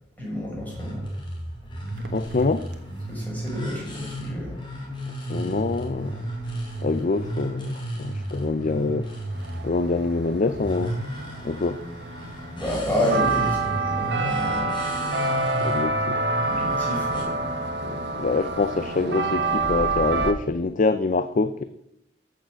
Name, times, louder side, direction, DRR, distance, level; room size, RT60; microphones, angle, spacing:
voice 1, 0.2-1.1 3.1-4.6 5.2-5.6 12.6-14.9 16.4-17.5, left 1 dB, 10° left, 5.7 m, -30 dB
sound 1, 0.6-17.2, right 1 dB, 30° left, 3.4 m, -34 dB
sound 2, 1.9-2.8 5.8-5.9 6.1-20.3, right 3 dB, 70° right, 1.3 m, -29 dB
voice 2, 2.1-2.7 5.3-6.2 6.8-9.2 9.6-11.0 11.4-11.8 15.6-16.2 17.8-21.7, left 3 dB, 45° left, 0.5 m, -25 dB
14.0 x 6.7 x 6.2 m
head